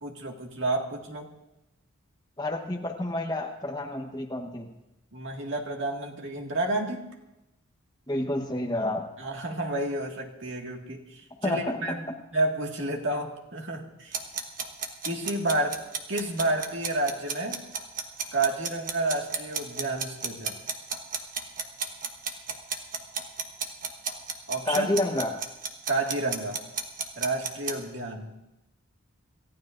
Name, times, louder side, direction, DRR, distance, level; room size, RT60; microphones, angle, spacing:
voice 1, 0.0-1.3 5.1-7.0 9.2-12.0 12.3-14.2 15.0-15.8 16.1-17.6 18.3-20.6 24.5-24.9 25.9-26.6 27.2-28.4, right 2 dB, 60° right, 1 dB, 2.0 m, -30 dB
voice 2, 2.4-4.7 8.1-9.0 11.4-11.8 24.6-25.3, left 1 dB, 20° left, 2 dB, 1.1 m, -29 dB
sound 1, 14.1-27.8, right 6 dB, 40° right, 1.3 m, -32 dB
27.5 x 14.5 x 2.6 m, 0.94 s
head